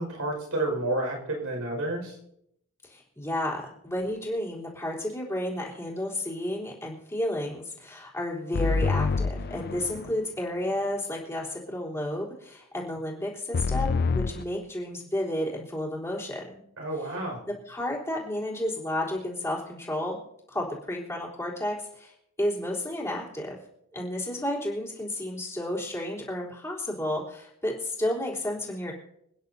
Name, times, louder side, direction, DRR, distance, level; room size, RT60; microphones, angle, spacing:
voice 1, 0.0-2.2 16.8-17.4, right 1 dB, 80° right, 1 dB, 5.3 m, -30 dB
voice 2, 2.9-16.6 17.7-20.2 20.5-22.1 22.4-23.6 23.9-28.9, left 1 dB, 10° left, -4 dB, 3.6 m, -32 dB
sound 1, 8.5-10.2 13.5-14.4, left 4 dB, 45° left, 0.4 m, -27 dB
27.5 x 10.0 x 2.8 m, 0.76 s
head